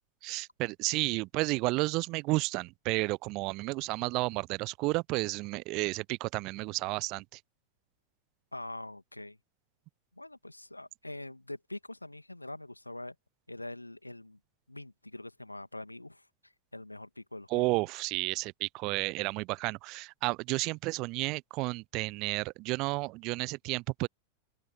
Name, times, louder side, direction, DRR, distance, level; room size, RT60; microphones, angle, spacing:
voice 1, 0.2-7.2 17.5-24.1, right 23 dB, 40° right, 0.7 m, -32 dB
voice 2, 8.5-9.4 10.2-13.2 13.5-14.4 14.7-17.7, left 1 dB, 85° left, 2.1 m, -44 dB
open air
figure-of-eight pair, 90°, 0 cm